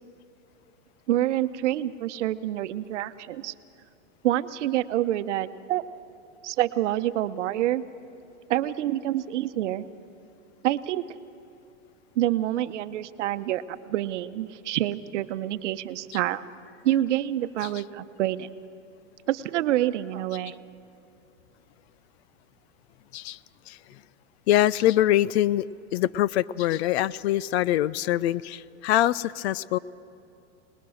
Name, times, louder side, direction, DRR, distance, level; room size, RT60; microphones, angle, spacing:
voice 1, 1.1-3.5 4.2-5.8 6.4-7.8 8.5-9.8 10.6-11.0 12.2-16.4 16.8-18.5 19.3-20.5, right 13 dB, 70° right, 12 dB, 0.9 m, -27 dB
voice 2, 24.5-25.7 25.9-29.8, left 13 dB, 60° left, 21 dB, 0.5 m, -24 dB
26.0 x 20.0 x 6.4 m, 2.6 s
hypercardioid pair, 130°, 37 cm